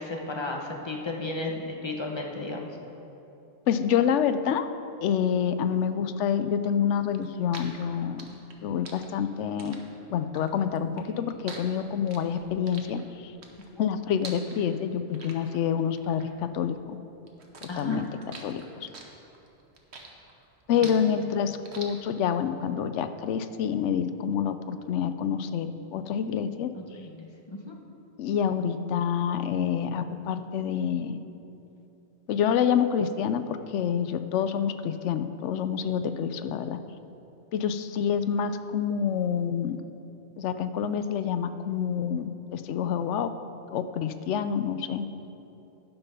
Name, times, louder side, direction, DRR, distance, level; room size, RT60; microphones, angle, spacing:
voice 1, 0.0-2.7 13.7-13.8 17.7-18.0 20.8-21.0 26.7-27.8, left 2 dB, 25° left, 1 dB, 0.9 m, -34 dB
voice 2, 3.7-4.7 5.0-8.3 8.6-9.8 10.1-10.9 11.2-13.3 13.8-17.0 17.6-18.1 18.4-18.9 20.7-26.7 28.2-31.2 32.3-36.8 37.5-39.8 40.4-43.3 43.7-45.1, left 8 dB, 85° left, 10 dB, 0.9 m, -27 dB
sound 1, 7.1-16.9 17.3-22.4, right 4 dB, 70° right, 1.3 m, -45 dB
12.0 x 5.7 x 5.6 m, 2.8 s
omnidirectional pair, 1.2 m